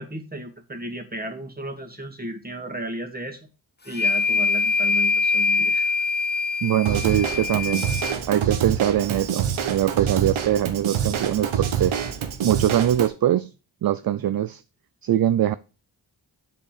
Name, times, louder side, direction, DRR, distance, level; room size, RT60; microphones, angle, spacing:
voice 1, 0.0-3.5 3.8-5.9, right 1 dB, 20° right, 2.3 m, -34 dB
sound 1, 3.9-8.2, left 4 dB, 20° left, 1.1 m, -23 dB
voice 2, 6.6-7.9 8.3-11.9 12.4-13.5 13.8-14.6 15.0-15.5, right 11 dB, 50° right, 0.5 m, -22 dB
Drum kit / Drum, 6.9-13.1, right 8 dB, 85° right, 1.1 m, -26 dB
7.1 x 5.1 x 6.7 m
cardioid pair, 55°, 47 cm